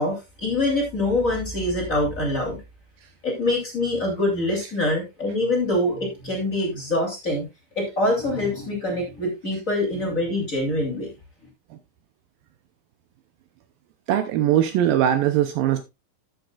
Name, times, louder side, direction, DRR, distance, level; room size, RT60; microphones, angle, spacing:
voice 1, 0.0-2.6 3.2-7.4 7.7-11.1, left 1 dB, 20° left, 2.9 m, -24 dB
voice 2, 14.1-15.8, right 11 dB, 75° right, 2.3 m, -20 dB
14.0 x 7.7 x 2.4 m
omnidirectional pair, 4.4 m